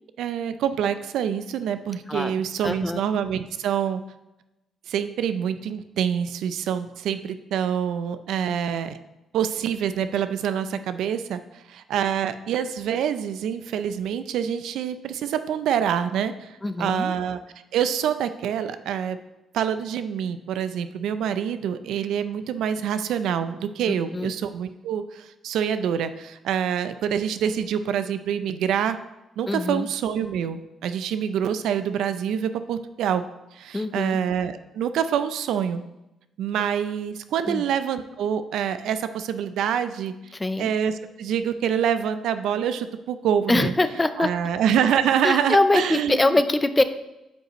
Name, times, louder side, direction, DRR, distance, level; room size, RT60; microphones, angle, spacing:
voice 1, 0.2-4.0 4.9-9.0 9.3-17.4 17.7-19.2 19.5-29.0 29.4-33.3 33.5-35.8 36.4-40.1 40.6-46.4, right 8 dB, 80° right, 11 dB, 0.4 m, -26 dB
voice 2, 2.6-3.0 16.6-17.1 23.9-24.3 29.5-29.9 33.7-34.2 37.5-37.6 40.3-40.7 43.5-44.3 45.2-46.8, left 2 dB, 15° left, 11 dB, 0.5 m, -23 dB
9.2 x 5.3 x 3.0 m, 0.94 s
cardioid pair, 90°, 0 cm